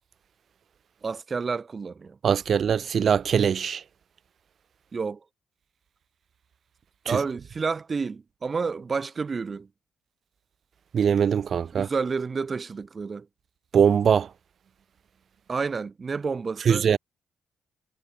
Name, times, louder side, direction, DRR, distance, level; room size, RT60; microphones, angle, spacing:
voice 1, 1.0-2.2 4.9-5.2 7.1-9.7 11.7-13.3 15.5-16.9, right 5 dB, 35° right, 5.4 m, -30 dB
voice 2, 2.2-3.8 7.1-7.2 10.9-11.9 13.7-14.3 16.7-17.0, right 7 dB, 55° right, 0.6 m, -22 dB
cardioid pair, 90°, 0 cm